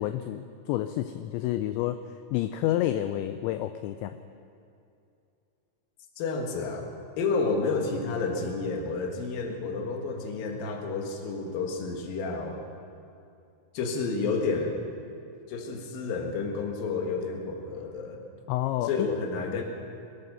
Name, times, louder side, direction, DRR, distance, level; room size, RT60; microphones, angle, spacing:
voice 1, 0.0-2.0 2.3-4.2 18.5-19.1, left 13 dB, 85° left, 9 dB, 2.7 m, -29 dB
voice 2, 6.2-12.6 13.7-14.9 15.5-18.2 18.8-19.6, left 4 dB, 60° left, 3 dB, 2.9 m, -30 dB
22.0 x 9.2 x 6.8 m, 2.6 s
omnidirectional pair, 5.5 m